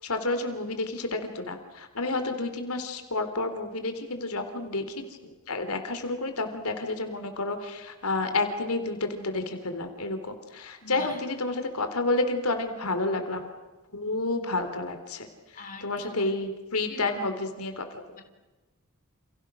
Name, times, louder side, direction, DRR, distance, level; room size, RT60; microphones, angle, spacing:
voice 1, 0.0-13.5 13.9-18.0, left 2 dB, 90° left, 7 dB, 3.6 m, -30 dB
voice 2, 10.8-11.2 15.5-16.3 16.9-17.0 18.1-18.2, left 4 dB, 40° left, 5 dB, 3.7 m, -43 dB
30.0 x 30.0 x 6.3 m, 1.1 s
head